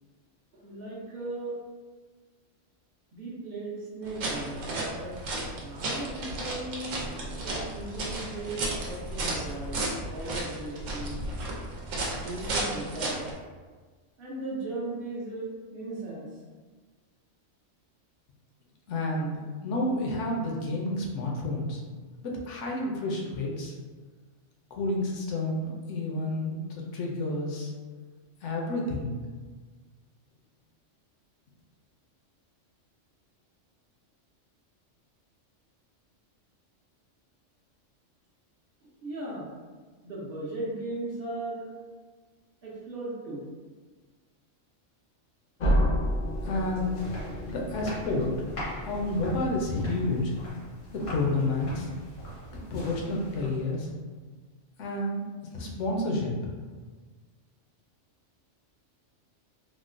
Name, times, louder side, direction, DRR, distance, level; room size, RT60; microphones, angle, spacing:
voice 1, 0.5-1.6 3.1-5.2 5.6-7.0 7.4-11.2 12.2-13.2 14.2-16.3 38.8-39.5 40.0-41.7 42.6-43.5, right 2 dB, 55° right, -5 dB, 0.7 m, -37 dB
sound 1, 4.0-13.3, right 2 dB, 80° right, 1.0 m, -33 dB
voice 2, 18.9-21.8 22.2-23.8 24.7-27.7 28.4-29.2 46.4-46.9 47.5-48.3 48.8-50.4 50.9-51.9 52.7-53.9 54.8-56.5, left 2 dB, 75° left, -1 dB, 0.9 m, -30 dB
sound 2, 45.6-50.3, equal, 55° left, 0.5 m, -31 dB
sound 3, 46.0-53.8, equal, 90° left, 1.5 m, -42 dB
3.6 x 2.0 x 2.4 m, 1.4 s
omnidirectional pair, 1.3 m